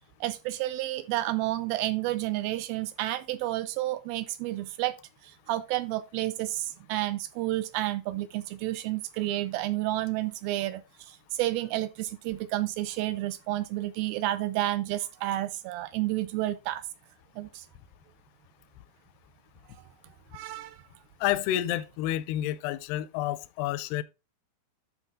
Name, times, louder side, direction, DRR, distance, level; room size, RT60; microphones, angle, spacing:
voice 1, 0.2-4.9 5.5-10.8 11.1-16.8 17.4-17.6 20.3-20.8, right 16 dB, 80° right, 2.2 m, -30 dB
voice 2, 21.2-24.0, left 13 dB, 85° left, 2.6 m, -29 dB
11.5 x 4.5 x 3.7 m
omnidirectional pair, 4.7 m